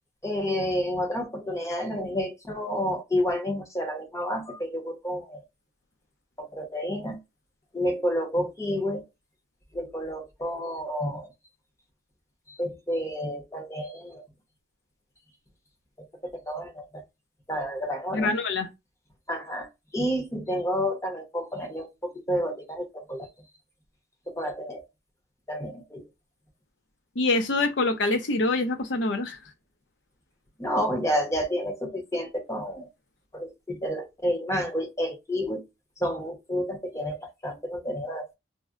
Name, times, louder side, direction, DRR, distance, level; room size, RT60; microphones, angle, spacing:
voice 1, 0.2-5.4 6.4-7.2 7.7-9.0 9.7-11.3 12.5-14.2 16.2-17.0 17.5-18.3 19.3-23.3 24.3-24.8 25.5-26.0 30.6-32.9 33.3-35.6 36.0-38.3, equal, 15° left, 0.9 m, -30 dB
voice 2, 18.1-18.7 27.2-29.4, left 2 dB, 85° left, 0.6 m, -25 dB
4.0 x 2.1 x 2.4 m
head